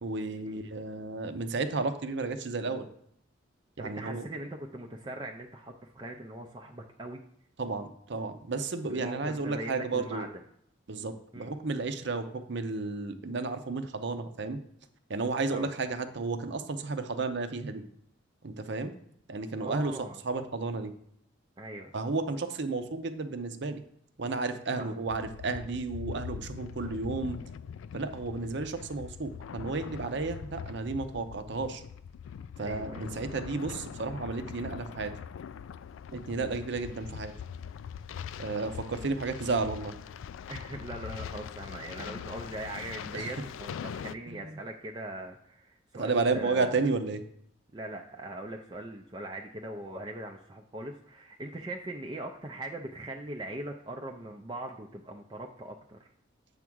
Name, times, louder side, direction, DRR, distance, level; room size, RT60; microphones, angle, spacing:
voice 1, 0.0-2.9 3.8-4.2 7.6-10.3 10.9-14.6 15.1-17.8 18.4-18.9 19.3-20.0 20.2-20.9 21.9-23.8 24.2-27.4 27.9-31.8 32.6-35.1 36.1-37.3 38.4-40.0 42.0-42.1 43.1-43.3 44.3-44.6 46.0-47.2, right 3 dB, 60° right, 8 dB, 0.7 m, -32 dB
voice 2, 3.8-7.2 8.9-10.3 11.3-11.5 15.5-15.7 19.6-20.2 21.6-21.9 24.8-25.0 32.6-33.4 40.5-46.9 47.7-56.1, right 1 dB, 25° right, 2 dB, 0.5 m, -41 dB
sound 1, 25.1-44.1, left 7 dB, 85° left, 0.3 m, -42 dB
8.0 x 3.6 x 6.1 m, 0.69 s
head